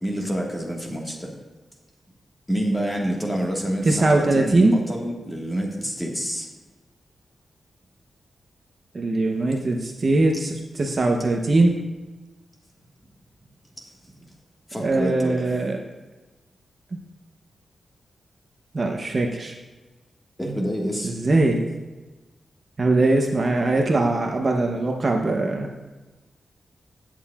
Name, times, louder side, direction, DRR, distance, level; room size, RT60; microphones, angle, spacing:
voice 1, 0.0-1.3 2.5-6.5 14.7-15.4 20.4-21.1, equal, 10° left, -1 dB, 1.5 m, -27 dB
voice 2, 3.9-4.7 8.9-11.8 14.8-15.8 18.7-19.5 21.0-21.6 22.8-25.7, right 2 dB, 35° right, 2 dB, 0.7 m, -21 dB
17.0 x 7.5 x 2.4 m, 1.2 s
wide cardioid pair, 145°, 0 cm